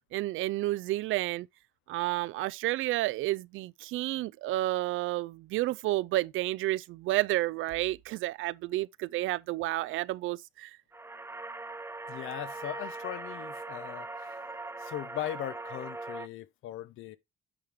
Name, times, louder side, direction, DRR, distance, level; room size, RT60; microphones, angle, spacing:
voice 1, 0.1-1.5 1.9-10.8, right 16 dB, 85° right, 0.4 m, -31 dB
sound 1, 10.9-16.3, right 2 dB, 10° right, 0.7 m, -40 dB
voice 2, 12.1-14.3 14.8-17.2, left 13 dB, 85° left, 0.8 m, -39 dB
8.7 x 4.8 x 3.6 m
cardioid pair, 90°, 20 cm